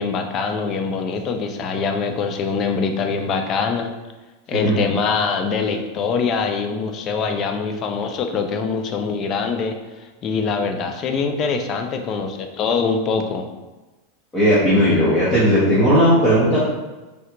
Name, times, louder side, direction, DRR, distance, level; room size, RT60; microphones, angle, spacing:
voice 1, 0.0-3.9 4.5-9.8 10.2-13.5, left 5 dB, 35° left, 5 dB, 0.4 m, -23 dB
voice 2, 4.5-5.0 14.3-16.7, equal, 15° left, -12 dB, 1.0 m, -16 dB
3.3 x 2.4 x 2.9 m, 1.1 s
supercardioid pair, 140°, 0 cm